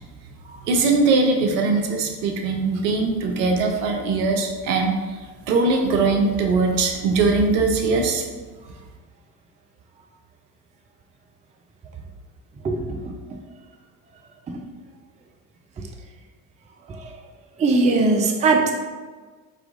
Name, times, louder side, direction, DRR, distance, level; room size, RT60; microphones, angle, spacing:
voice 1, 0.7-5.2 5.5-8.2, right 3 dB, 75° right, 3 dB, 0.8 m, -21 dB
voice 2, 17.6-18.7, right 3 dB, 15° right, 3 dB, 0.4 m, -18 dB
4.4 x 3.6 x 2.5 m, 1.4 s
hypercardioid pair, 65°, 50 cm